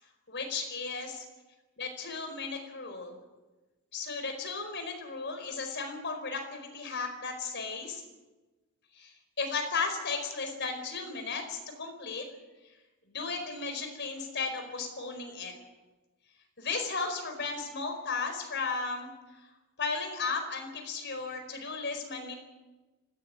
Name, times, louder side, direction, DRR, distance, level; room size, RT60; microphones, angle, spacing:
voice 1, 0.3-1.2 1.8-3.2 3.9-8.0 8.9-12.2 13.1-15.5 16.6-19.1 19.8-22.3, left 4 dB, 55° left, 5 dB, 4.8 m, -35 dB
19.0 x 16.0 x 9.6 m, 1.2 s
head